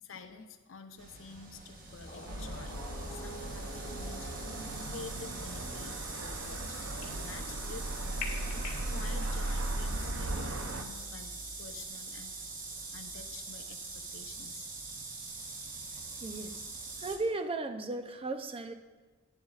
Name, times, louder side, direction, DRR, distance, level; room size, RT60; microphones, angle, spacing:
voice 1, 0.0-2.8 3.1-4.3 4.8-8.2 8.9-12.4 12.9-14.7, left 4 dB, 75° left, 8 dB, 0.7 m, -49 dB
sound 1, 1.0-17.2, right 3 dB, 45° right, 1.1 m, -43 dB
sound 2, 2.1-8.9, left 3 dB, 50° left, 1.7 m, -47 dB
sound 3, 2.3-10.8, right 2 dB, 85° right, 0.7 m, -38 dB
voice 2, 16.2-16.6 17.0-18.7, right 3 dB, 30° right, 8 dB, 0.5 m, -36 dB
11.5 x 10.0 x 2.4 m, 1.3 s
head